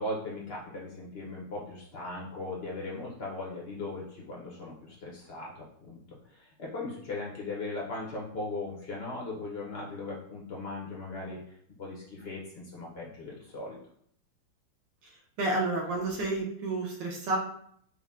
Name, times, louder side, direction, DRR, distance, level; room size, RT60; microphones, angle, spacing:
voice 1, 0.0-13.8, left 2 dB, 85° left, -4 dB, 0.5 m, -38 dB
voice 2, 15.4-17.4, right 2 dB, 70° right, 0 dB, 1.3 m, -30 dB
5.3 x 2.1 x 3.5 m, 0.67 s
omnidirectional pair, 2.2 m